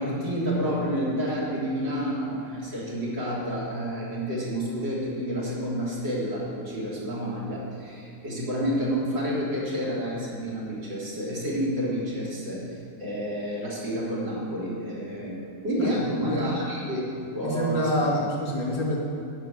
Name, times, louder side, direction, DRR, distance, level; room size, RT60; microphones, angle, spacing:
voice 1, 0.0-12.6 13.0-15.3 15.6-17.0 17.3-17.9, equal, 80° right, -7 dB, 4.2 m, -29 dB
voice 2, 15.8-16.5 17.4-19.0, equal, 90° left, -4 dB, 3.8 m, -27 dB
11.5 x 6.5 x 8.8 m, 2.8 s
omnidirectional pair, 1.9 m